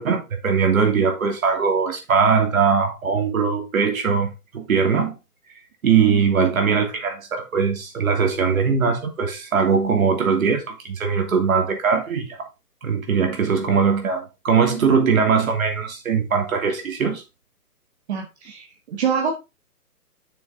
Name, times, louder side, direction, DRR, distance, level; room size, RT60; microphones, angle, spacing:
voice 1, 0.0-5.1 5.8-12.4 12.8-17.2, right 6 dB, 60° right, 3.1 m, -20 dB
voice 2, 18.1-19.3, right 6 dB, 45° right, 1.4 m, -25 dB
7.0 x 6.5 x 3.9 m
hypercardioid pair, 140°, 46 cm